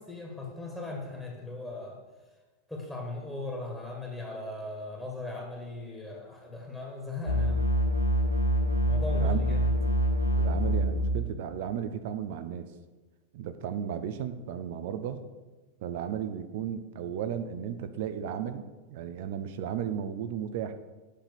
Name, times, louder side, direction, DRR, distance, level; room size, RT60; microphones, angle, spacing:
voice 1, 0.0-2.0 2.7-7.7 8.8-9.7, left 2 dB, 5° left, -1 dB, 1.9 m, -38 dB
sound 1, 7.3-11.4, equal, 90° left, 1.0 m, -26 dB
voice 2, 10.4-12.7 13.3-15.2 15.8-18.6 18.9-20.7, right 9 dB, 50° right, 10 dB, 0.6 m, -34 dB
8.4 x 5.7 x 7.0 m, 1.2 s
figure-of-eight pair, 90°, 0 cm